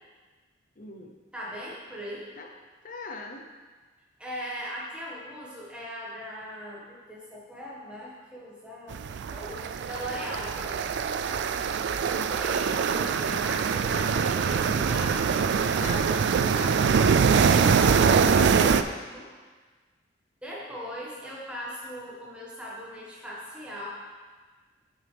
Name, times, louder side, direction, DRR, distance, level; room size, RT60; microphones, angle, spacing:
voice 1, 0.8-1.1 2.4-2.5 2.8-3.4 15.7-16.2 16.4-17.4, left 3 dB, 45° left, 3 dB, 0.7 m, -40 dB
voice 2, 1.3-2.3 4.2-10.9 12.2-15.9 17.3-19.3 20.4-23.9, equal, 5° right, -6 dB, 1.6 m, -39 dB
sound 1, 8.9-18.8, right 6 dB, 60° right, 0.3 m, -23 dB
9.1 x 6.2 x 3.4 m, 1.4 s
head